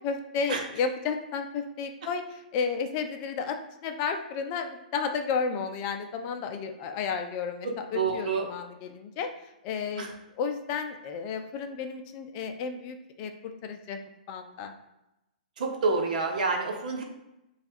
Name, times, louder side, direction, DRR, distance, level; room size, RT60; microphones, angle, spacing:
voice 1, 0.0-9.3 9.6-10.1 10.4-13.3 13.6-14.0 14.3-14.7, left 5 dB, 40° left, 6 dB, 0.5 m, -32 dB
voice 2, 7.6-8.5 10.0-10.1 15.6-17.0, right 4 dB, 65° right, 2 dB, 0.9 m, -28 dB
3.4 x 2.4 x 4.2 m, 0.92 s
hypercardioid pair, 135°, 5 cm